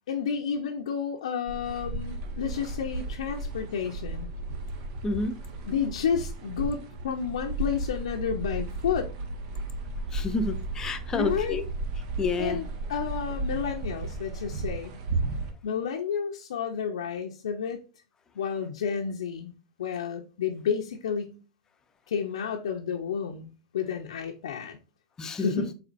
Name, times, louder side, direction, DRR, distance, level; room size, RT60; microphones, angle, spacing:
voice 1, 0.1-4.3 5.7-9.1 11.1-11.6 12.4-15.0 15.6-17.8 18.4-19.5 19.8-21.4 22.1-23.5 23.7-24.8 25.4-25.7, left 7 dB, 85° left, 0.6 m, -31 dB
sound 1, 1.5-15.5, right 2 dB, 55° right, 1.0 m, -34 dB
voice 2, 5.0-5.3 10.1-11.6 12.2-12.6 25.2-25.6, left 3 dB, 20° left, 0.6 m, -29 dB
4.2 x 4.1 x 2.5 m
hypercardioid pair, 125°, 3 cm